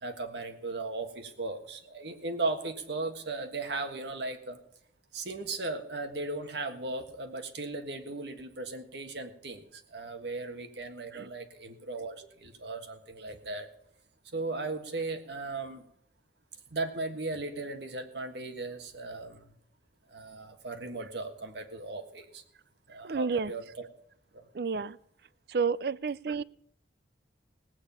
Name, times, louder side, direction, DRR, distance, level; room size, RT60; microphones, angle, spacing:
voice 1, 0.0-4.6 5.1-13.7 14.3-15.8 16.7-19.5 20.1-22.4 22.9-23.9 24.3-24.4, right 3 dB, 75° right, 6 dB, 1.5 m, -37 dB
voice 2, 23.0-23.5 24.5-25.0 25.5-26.4, right 5 dB, 60° right, 19 dB, 0.4 m, -30 dB
18.0 x 8.9 x 5.5 m, 0.71 s
head